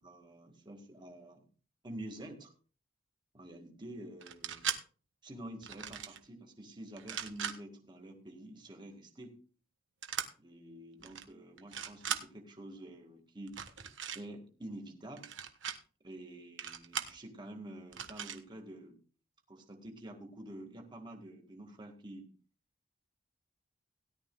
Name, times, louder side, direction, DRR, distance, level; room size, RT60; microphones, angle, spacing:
voice 1, 0.0-1.4 1.8-2.5 3.3-4.7 5.2-9.4 10.4-13.6 14.1-15.3 16.0-19.0 19.5-22.3, right 1 dB, 25° right, 3 dB, 1.8 m, -48 dB
sound 1, 4.2-4.8 5.6-6.2 7.0-7.5 10.0-10.3 11.0-11.2 11.6-12.2 13.5-14.2 15.2-15.8 16.6-17.1 17.9-18.4, right 8 dB, 85° right, 1.3 m, -38 dB
17.0 x 11.5 x 2.3 m, 0.38 s
head